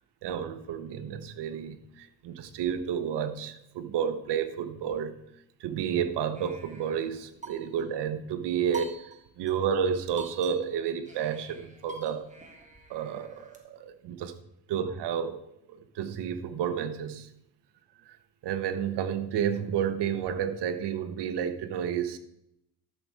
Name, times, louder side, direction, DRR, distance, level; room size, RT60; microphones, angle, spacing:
voice 1, 0.2-5.1 5.6-9.0 9.4-12.2 12.9-14.3 14.7-15.4 15.7-17.3 18.1-18.2 18.4-22.2, right 8 dB, 85° right, 9 dB, 1.2 m, -31 dB
sound 1, 6.3-8.0 8.7-9.5 9.8-9.9 10.2-13.6, right 4 dB, 20° right, 1.8 m, -46 dB
13.0 x 7.0 x 4.7 m, 0.80 s
cardioid pair, 135°, 40 cm